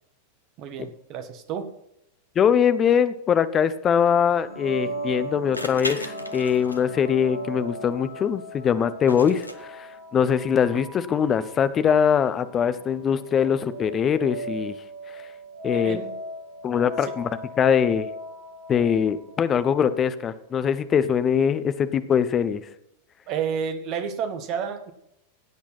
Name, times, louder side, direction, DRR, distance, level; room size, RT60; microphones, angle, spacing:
voice 1, 0.6-1.7 15.7-16.1 17.0-17.1 23.3-24.9, right 7 dB, 40° right, 9 dB, 1.7 m, -30 dB
voice 2, 2.4-14.8 15.6-16.0 16.6-17.3 17.6-18.1 18.7-22.6, left 7 dB, 25° left, 13 dB, 0.8 m, -22 dB
sound 1, 4.4-4.5 5.5-7.0 9.1-9.5, left 1 dB, 85° left, 1.0 m, -35 dB
sound 2, 4.4-20.0, right 1 dB, 80° right, 5.1 m, -37 dB
16.0 x 8.7 x 4.1 m, 0.78 s
figure-of-eight pair, 90°, 0 cm